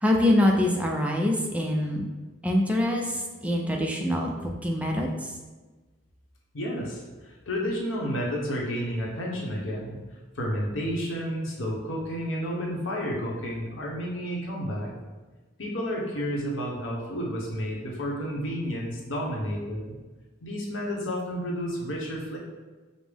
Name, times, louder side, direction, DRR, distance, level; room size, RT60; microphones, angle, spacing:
voice 1, 0.0-2.0 2.4-5.3, left 1 dB, 5° right, 0 dB, 0.4 m, -24 dB
voice 2, 6.5-10.0 10.3-14.9 15.6-19.9 20.4-22.4, equal, 70° left, -2 dB, 0.8 m, -31 dB
5.1 x 2.0 x 3.4 m, 1.3 s
head